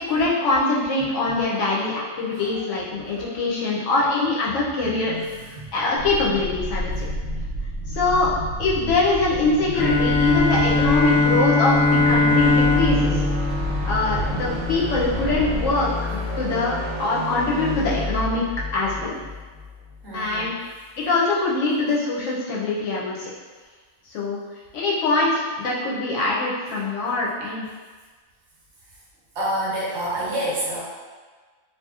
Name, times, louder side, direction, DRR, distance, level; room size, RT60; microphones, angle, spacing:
voice 1, 0.0-5.1 5.7-7.1 7.9-8.3 8.6-13.2 13.8-18.4 18.7-19.2 20.1-20.5 21.0-23.3 24.1-24.4 24.7-27.7, left 3 dB, 70° left, -4 dB, 0.8 m, -23 dB
voice 2, 1.0-1.4 2.3-2.6 3.0-3.7 4.8-5.7 20.0-20.6 29.3-30.8, right 1 dB, 65° right, -6 dB, 0.8 m, -30 dB
sound 1, 5.9-15.7, right 1 dB, 85° right, 1.1 m, -30 dB
Bowed string instrument, 9.7-14.6, left 3 dB, 40° left, 0.6 m, -20 dB
sound 2, 12.3-20.4, left 2 dB, 30° right, 0.6 m, -29 dB
2.8 x 2.4 x 2.4 m, 1.4 s
omnidirectional pair, 1.4 m